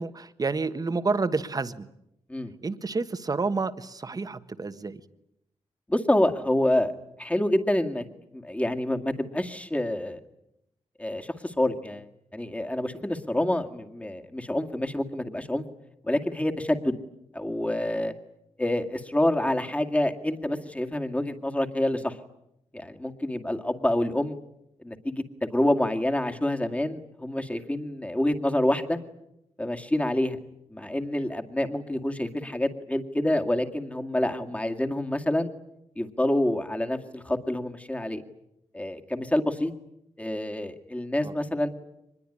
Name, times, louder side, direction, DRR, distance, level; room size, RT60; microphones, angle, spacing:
voice 1, 0.0-1.9 2.6-5.0 41.2-41.3, right 4 dB, 35° right, 11 dB, 1.4 m, -29 dB
voice 2, 5.9-6.9 7.2-8.0 8.3-10.2 11.0-12.0 12.3-15.6 16.0-17.0 17.3-18.1 18.6-22.2 22.7-24.4 24.8-29.0 29.6-30.4 30.7-35.5 36.0-38.2 38.7-39.7 40.2-41.7, left 1 dB, 10° left, 5 dB, 2.2 m, -27 dB
24.5 x 21.0 x 9.9 m, 0.81 s
wide cardioid pair, 100°, 12 cm